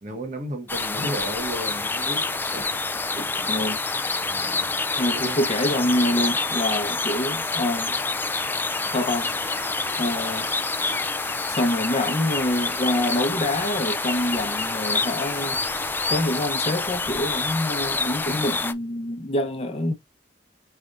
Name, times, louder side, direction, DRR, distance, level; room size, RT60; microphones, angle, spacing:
voice 1, 0.0-3.5 4.3-4.7 5.1-5.4, right 1 dB, 45° right, 1.2 m, -34 dB
sound 1, 0.7-18.7, left 3 dB, 10° left, 0.4 m, -27 dB
voice 2, 3.5-3.8 5.0-8.0 8.9-9.3 10.0-10.5 11.5-19.9, left 1 dB, 35° left, 0.9 m, -26 dB
sound 2, 8.7-16.1, right 3 dB, 85° right, 1.6 m, -44 dB
4.9 x 3.4 x 2.5 m
head